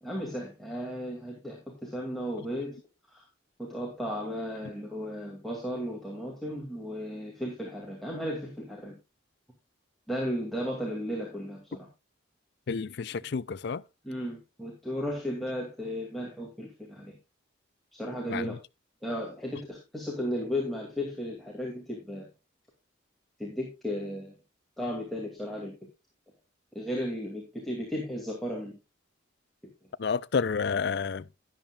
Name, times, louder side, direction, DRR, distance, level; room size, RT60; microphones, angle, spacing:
voice 1, 0.0-2.8 3.1-3.2 3.6-9.0 10.1-11.9 14.0-17.2 17.9-18.5 19.0-22.3 23.4-24.4 24.8-25.7 26.7-28.7, equal, ahead, 2.4 m, -35 dB
voice 2, 12.7-13.8 18.3-18.6 30.0-31.2, left 5 dB, 55° left, 0.4 m, -30 dB
12.5 x 10.5 x 2.4 m
head